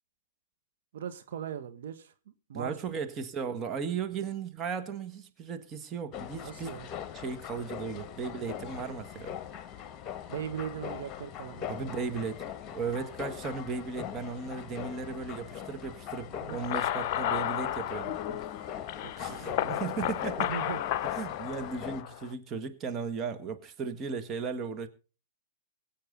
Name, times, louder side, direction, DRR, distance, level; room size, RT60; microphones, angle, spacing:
voice 1, 0.9-2.1 2.5-2.7 4.2-4.3 6.4-6.9 10.3-12.1 16.5-16.6 18.3-18.8 19.0-19.8 20.4-20.8, right 8 dB, 60° right, 1.6 m, -40 dB
voice 2, 2.5-6.7 7.1-9.3 11.7-12.4 12.7-18.2 19.2-20.5 21.1-24.9, right 5 dB, 25° right, 1.8 m, -36 dB
sound 1, 6.1-22.0, left 9 dB, 30° left, 1.7 m, -41 dB
sound 2, 16.5-22.3, left 12 dB, 45° left, 0.7 m, -33 dB
23.5 x 8.9 x 3.9 m
figure-of-eight pair, 105°, 0 cm